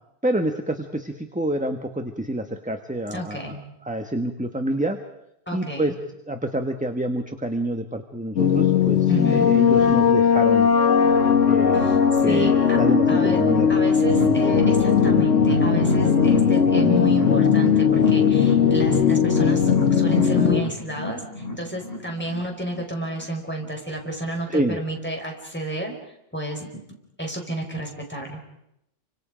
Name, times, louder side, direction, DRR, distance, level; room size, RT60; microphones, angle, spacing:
voice 1, 0.2-3.6 3.8-5.0 5.5-5.9 6.3-10.7 11.5-13.8 24.5-24.8, right 1 dB, 5° right, 6 dB, 1.2 m, -27 dB
voice 2, 3.1-3.6 5.5-6.0 9.1-9.5 11.7-12.8 13.1-13.4 13.7-26.7 27.2-28.4, right 1 dB, 10° left, 0 dB, 4.9 m, -31 dB
sound 1, 8.4-20.6, left 7 dB, 85° left, 1.8 m, -18 dB
sound 2, 14.0-23.3 23.6-23.7 24.1-24.2, equal, 30° left, 5.1 m, -30 dB
29.5 x 25.5 x 5.1 m, 0.81 s
omnidirectional pair, 1.3 m